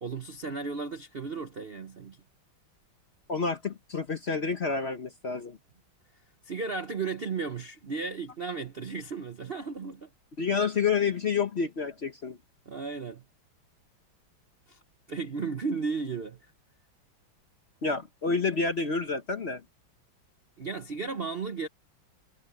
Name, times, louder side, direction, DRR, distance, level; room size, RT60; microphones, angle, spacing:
voice 1, 0.0-2.2 6.4-10.1 12.7-13.2 14.7-14.8 15.1-16.4 20.6-21.7, right 4 dB, 45° right, 0.7 m, -34 dB
voice 2, 3.3-5.6 10.4-12.4 17.8-19.6, left 5 dB, 40° left, 1.0 m, -29 dB
omnidirectional pair, 2.2 m